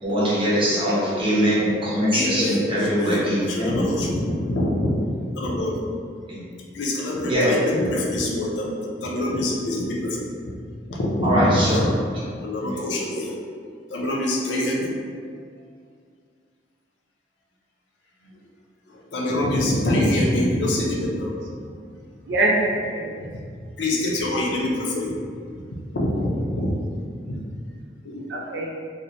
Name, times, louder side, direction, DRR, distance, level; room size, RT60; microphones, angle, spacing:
voice 1, 0.0-3.8 6.3-6.4 7.3-7.5 11.2-11.8 12.6-12.8, equal, 30° right, -9 dB, 0.8 m, -22 dB
voice 2, 0.8-1.7 21.8-21.9 22.3-23.1 28.3-28.7, right 1 dB, 70° right, -1 dB, 0.4 m, -25 dB
voice 3, 2.1-6.0 6.7-10.5 10.9-11.9 12.4-13.3 13.9-15.0 18.9-21.3 23.2-23.3 23.8-25.2 25.5-25.6 25.9-26.7 27.3-27.4 28.0-28.3, left 1 dB, 70° left, -2 dB, 0.5 m, -25 dB
2.9 x 2.0 x 2.5 m, 2.1 s
head